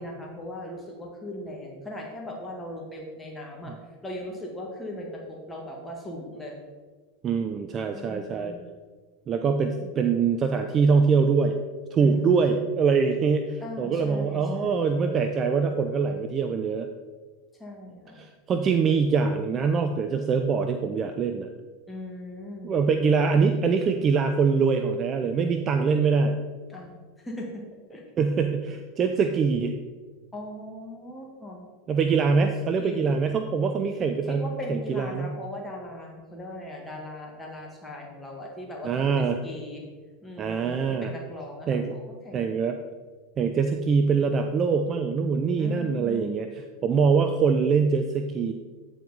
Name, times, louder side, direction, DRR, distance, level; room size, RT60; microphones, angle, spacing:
voice 1, 0.0-3.7 4.0-6.5 7.9-8.7 12.0-12.5 13.6-15.0 17.6-18.2 21.9-22.7 26.7-27.6 27.9-28.0 30.3-31.7 32.7-33.2 34.2-39.8 40.2-42.5 45.6-46.3, left 1 dB, 15° left, -1 dB, 1.5 m, -39 dB
voice 2, 7.2-8.5 9.3-11.6 11.9-16.9 18.1-21.5 22.6-26.4 28.2-29.8 31.9-35.3 38.8-39.4 40.4-41.1 41.7-42.0 42.3-42.8 43.4-48.5, right 5 dB, 35° right, 6 dB, 0.5 m, -24 dB
9.0 x 4.6 x 4.0 m, 1.4 s
hypercardioid pair, 90°, 0 cm